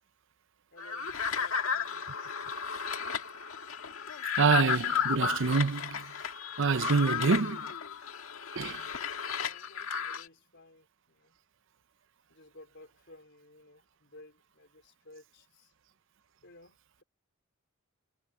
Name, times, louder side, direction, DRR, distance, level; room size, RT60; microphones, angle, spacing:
voice 1, 0.7-2.1 2.4-3.1 9.4-11.4 12.3-15.7 16.4-17.0, left 2 dB, 55° left, 4.5 m, -56 dB
sound 1, 0.8-10.3, left 7 dB, 75° left, 1.8 m, -34 dB
voice 2, 4.4-6.0 6.6-7.7 8.6-8.8, right 4 dB, 60° right, 0.7 m, -26 dB
head